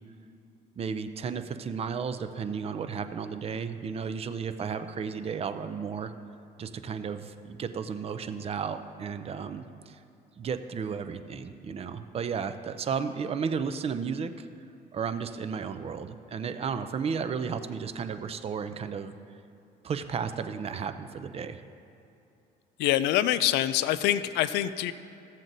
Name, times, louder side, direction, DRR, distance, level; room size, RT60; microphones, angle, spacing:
voice 1, 0.8-6.1 6.6-10.0 10.4-14.3 14.9-19.1 19.8-21.6, right 6 dB, 35° right, 10 dB, 0.5 m, -33 dB
voice 2, 22.8-24.9, left 13 dB, 90° left, 14 dB, 0.4 m, -25 dB
15.5 x 7.3 x 2.7 m, 2.6 s
cardioid pair, 110°, 17 cm